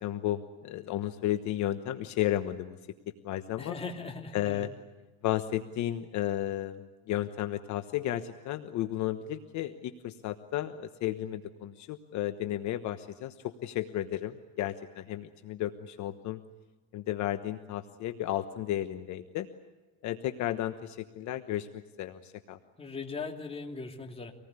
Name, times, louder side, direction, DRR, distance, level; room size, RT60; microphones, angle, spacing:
voice 1, 0.0-2.8 3.2-3.8 4.3-4.7 5.2-16.4 16.9-19.5 20.0-22.6, left 13 dB, 55° left, 9 dB, 1.2 m, -33 dB
voice 2, 3.6-4.7 22.8-24.3, left 4 dB, 15° left, 2 dB, 2.9 m, -39 dB
26.0 x 19.0 x 9.7 m, 1.2 s
cardioid pair, 135°, 35 cm